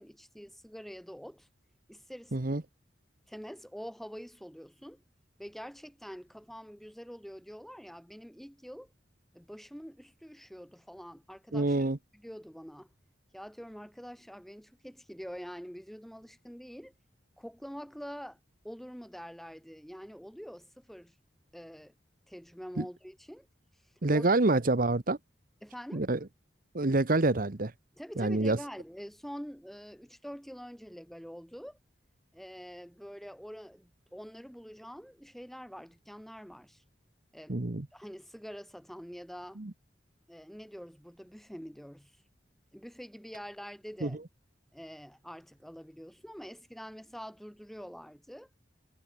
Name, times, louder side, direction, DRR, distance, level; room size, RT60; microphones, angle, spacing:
voice 1, 0.0-1.5 1.9-2.4 3.3-5.0 5.4-8.9 9.3-12.9 13.3-16.9 17.4-18.4 18.6-21.1 21.5-21.9 22.3-23.5 24.1-24.3 25.6-26.1 28.0-31.8 32.3-36.8 37.3-37.7 37.9-39.6 40.3-42.2 42.7-44.2 44.7-48.5, equal, ahead, 7.2 m, -46 dB
voice 2, 11.5-12.0 22.8-22.9 24.0-25.2 25.9-26.2 26.7-27.7 28.2-28.6 37.5-37.9 39.6-39.7 44.0-44.1, right 2 dB, 50° right, 1.1 m, -27 dB
head